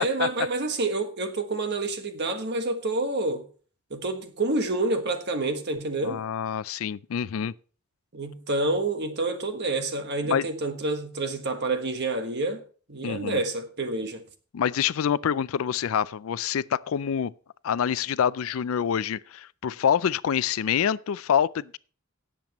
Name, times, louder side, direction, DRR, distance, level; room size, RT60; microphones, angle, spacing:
voice 1, 0.0-3.4 3.9-6.2 8.1-12.6 12.9-14.2, right 2 dB, 55° right, 1.4 m, -28 dB
voice 2, 6.0-7.5 10.3-10.5 13.0-13.4 14.5-17.3 17.6-21.8, left 8 dB, 75° left, 0.4 m, -26 dB
17.5 x 7.4 x 3.0 m
head